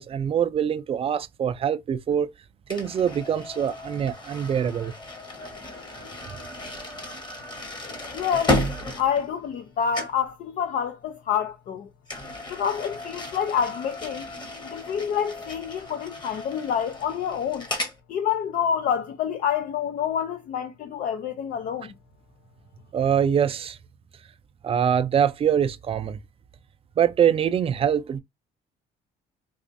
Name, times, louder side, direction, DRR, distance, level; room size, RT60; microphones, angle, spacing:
voice 1, 0.0-2.3 2.7-4.9 6.3-6.4 22.9-23.8 24.6-26.2 27.0-28.2, right 8 dB, 35° right, 0.4 m, -24 dB
sound 1, 2.7-9.7 9.9-10.3 12.1-18.0, left 1 dB, 25° left, 1.1 m, -33 dB
voice 2, 8.1-8.6 9.0-11.9 12.5-14.3 14.6-17.7 18.1-21.9, left 8 dB, 55° left, 0.5 m, -27 dB
4.1 x 2.4 x 2.5 m
cardioid pair, 110°, 17 cm